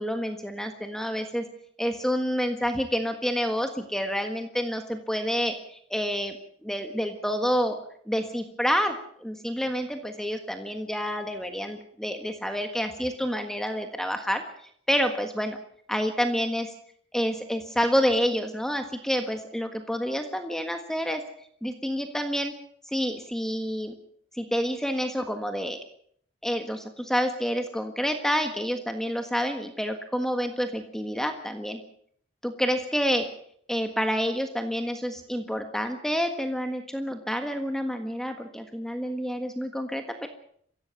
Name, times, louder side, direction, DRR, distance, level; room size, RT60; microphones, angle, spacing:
voice 1, 0.0-1.4 1.8-6.3 6.6-7.8 8.1-14.4 14.9-15.6 15.9-16.7 17.1-21.2 21.6-22.5 22.9-23.9 24.3-25.8 26.4-31.8 32.4-33.2 33.7-40.3, equal, ahead, 6 dB, 1.5 m, -28 dB
23.5 x 16.5 x 7.0 m, 0.64 s
head